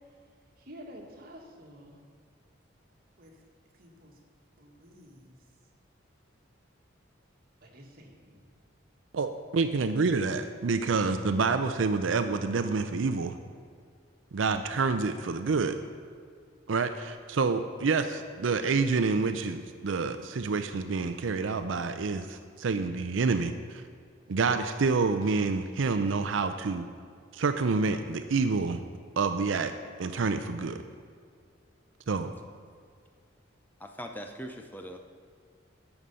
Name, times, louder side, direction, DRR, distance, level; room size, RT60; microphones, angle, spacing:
voice 1, 0.6-2.0 3.2-3.4 3.7-4.2 4.6-5.4 7.6-8.4, equal, 50° right, 0 dB, 1.7 m, -50 dB
voice 2, 9.1-13.4 14.3-15.8 16.7-23.8 24.3-26.9 27.3-28.8 29.2-29.7 30.0-30.8 32.1-32.3, right 4 dB, 80° right, 8 dB, 0.5 m, -28 dB
voice 3, 33.8-35.0, equal, 10° left, 4 dB, 0.5 m, -41 dB
11.5 x 7.1 x 5.4 m, 2.2 s
head